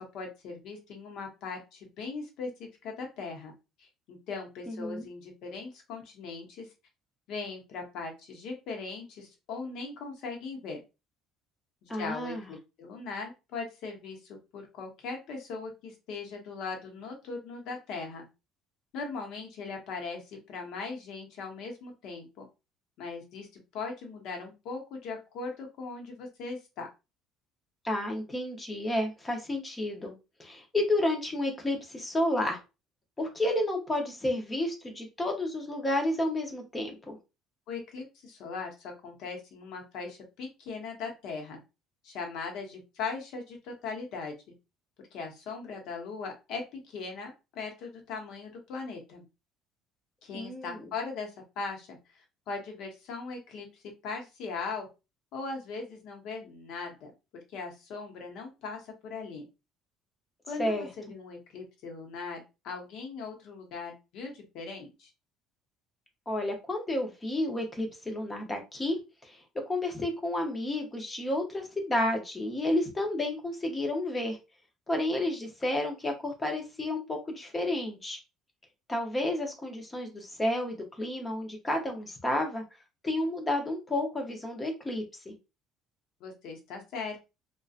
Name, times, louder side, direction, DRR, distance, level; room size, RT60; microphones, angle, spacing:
voice 1, 0.1-3.5 3.8-6.7 7.3-10.8 11.8-18.2 18.9-22.5 23.0-23.5 23.7-26.9 37.7-41.6 42.0-44.3 45.1-49.2 50.2-54.9 55.3-57.1 57.5-59.5 60.5-65.1 86.2-87.2, left 4 dB, 65° left, 2 dB, 0.9 m, -39 dB
voice 2, 4.7-5.1 11.9-12.5 27.8-30.1 30.4-32.6 33.2-37.2 50.3-50.9 60.6-60.9 66.3-69.0 69.2-69.4 69.7-74.4 74.9-78.2 78.9-82.6 83.0-85.3, left 1 dB, 15° left, 3 dB, 0.7 m, -31 dB
2.7 x 2.2 x 2.4 m, 0.27 s
cardioid pair, 145°, 0 cm